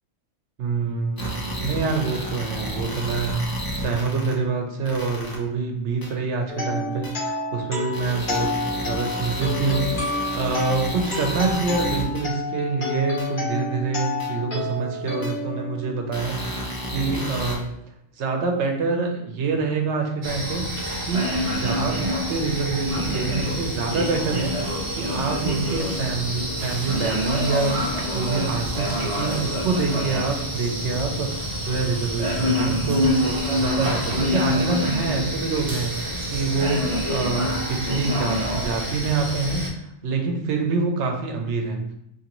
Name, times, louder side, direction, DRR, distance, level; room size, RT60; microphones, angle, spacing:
voice 1, 0.6-17.7 18.2-22.0 22.3-41.8, right 4 dB, 80° right, 3 dB, 1.0 m, -26 dB
sound 1, 1.2-4.3 4.9-5.4 6.0-6.1 7.0-7.1 7.9-12.2 13.2-13.3 14.2-14.3 15.2-15.3 16.1-17.6, equal, 25° left, 0.5 m, -31 dB
sound 2, 6.5-16.4, left 3 dB, 50° left, 1.3 m, -30 dB
sound 3, 20.2-39.7, equal, 35° right, 0.5 m, -26 dB
3.8 x 2.8 x 2.9 m, 0.79 s
omnidirectional pair, 1.2 m